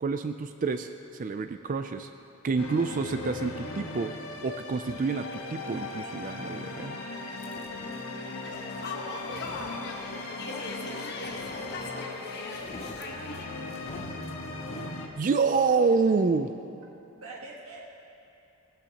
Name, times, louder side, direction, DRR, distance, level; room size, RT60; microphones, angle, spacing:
voice 1, 0.0-2.1 2.4-4.1 4.4-7.0 15.1-16.5, right 4 dB, 40° right, 9 dB, 0.4 m, -27 dB
sound 1, 2.6-15.1, left 2 dB, 75° left, 1.4 m, -38 dB
sound 2, 7.4-8.2 9.0-10.3 11.2-12.1 12.4-15.0, left 2 dB, 30° left, 0.5 m, -47 dB
voice 2, 7.8-9.5 9.9-11.1 11.4-12.9 13.4-14.2 17.2-17.8, right 2 dB, 75° right, -4 dB, 1.6 m, -49 dB
sound 3, 8.4-13.4, left 3 dB, 50° left, 1.4 m, -39 dB
19.0 x 16.0 x 2.9 m, 2.7 s
head